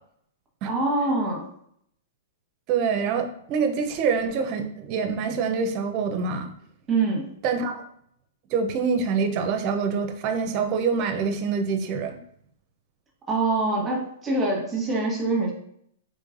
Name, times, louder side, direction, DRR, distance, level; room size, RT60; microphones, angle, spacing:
voice 1, 0.6-1.4 6.9-7.3 13.3-15.5, right 2 dB, 20° right, -2 dB, 1.1 m, -24 dB
voice 2, 2.7-6.5 7.4-7.8 8.5-12.2, right 5 dB, 40° right, 6 dB, 0.6 m, -25 dB
3.8 x 3.1 x 2.5 m, 0.69 s
hypercardioid pair, 135°, 0 cm